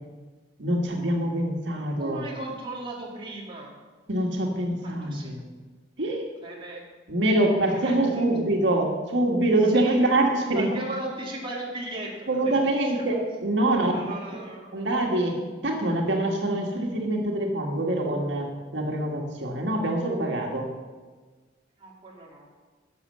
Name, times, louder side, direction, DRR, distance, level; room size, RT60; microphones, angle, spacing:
voice 1, 0.6-2.3 4.1-5.4 6.0-6.3 7.1-10.7 12.3-13.9 14.7-15.3 15.6-18.5 18.7-20.7, right 1 dB, 90° right, 1 dB, 1.8 m, -25 dB
voice 2, 1.7-3.7 4.8-5.3 6.4-6.8 7.7-8.3 9.6-10.0 10.5-12.5 12.9-13.0 13.6-14.9 21.8-22.5, right 2 dB, 30° right, -3 dB, 2.3 m, -37 dB
12.0 x 7.0 x 6.8 m, 1.4 s
head